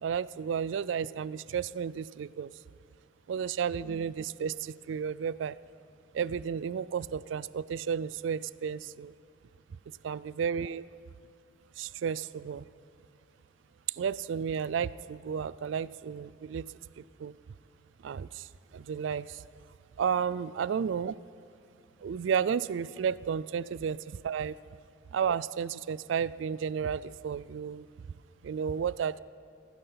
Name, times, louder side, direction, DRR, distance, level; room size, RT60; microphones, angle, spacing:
voice 1, 0.0-2.5 3.3-5.6 6.1-9.1 10.0-10.8 11.8-12.6 14.0-16.6 17.0-17.3 18.0-18.5 18.7-19.4 20.0-21.2 22.0-24.5 25.1-27.9 28.4-29.2, right 7 dB, 85° right, 19 dB, 0.3 m, -32 dB
16.0 x 15.5 x 5.7 m, 2.3 s
head